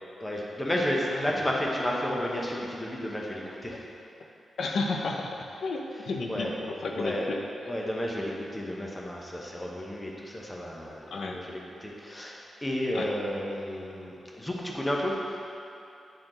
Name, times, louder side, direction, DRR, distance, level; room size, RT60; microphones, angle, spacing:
voice 1, 0.2-3.9 6.3-6.5 6.9-7.3 7.6-15.3, equal, 15° left, -2 dB, 0.8 m, -32 dB
voice 2, 4.6-5.4 5.6-7.4 11.1-11.4 12.9-13.1, left 3 dB, 65° left, 2 dB, 0.6 m, -32 dB
8.8 x 4.3 x 3.8 m, 2.8 s
wide cardioid pair, 145°, 0 cm